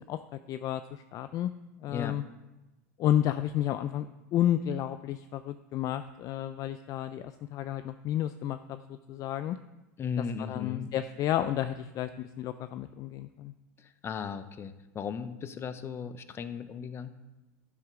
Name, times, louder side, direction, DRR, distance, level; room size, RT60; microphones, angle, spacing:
voice 1, 0.1-1.5 1.8-2.2 3.0-9.6 10.2-13.5, left 11 dB, 45° left, 11 dB, 0.5 m, -31 dB
voice 2, 10.0-10.9 13.8-17.1, left 6 dB, 30° left, 12 dB, 0.8 m, -36 dB
11.0 x 10.5 x 3.8 m, 1.0 s
supercardioid pair, 110°, 9 cm